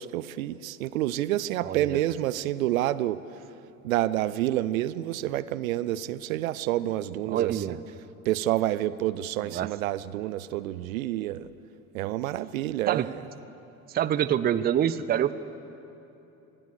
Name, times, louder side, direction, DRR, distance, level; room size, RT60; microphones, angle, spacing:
voice 1, 0.0-3.2 3.8-7.6 8.2-11.5 11.9-13.2, right 14 dB, 60° right, 17 dB, 0.7 m, -28 dB
voice 2, 1.6-2.0 7.3-7.8 9.5-9.7 12.9-13.1 13.9-15.3, right 10 dB, 20° right, 15 dB, 0.6 m, -26 dB
26.0 x 18.5 x 6.7 m, 2.9 s
figure-of-eight pair, 70°, 46 cm